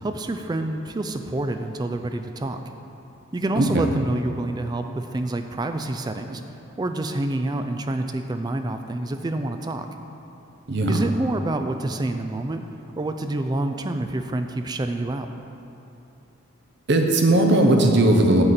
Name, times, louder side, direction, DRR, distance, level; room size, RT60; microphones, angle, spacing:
voice 1, 0.0-2.6 3.3-6.4 6.8-9.9 10.9-12.6 13.0-15.3, right 2 dB, 20° right, 7 dB, 0.3 m, -27 dB
voice 2, 3.6-3.9 10.7-11.0 16.9-18.4, right 1 dB, 55° right, 3 dB, 0.8 m, -18 dB
8.6 x 6.7 x 4.3 m, 2.9 s
head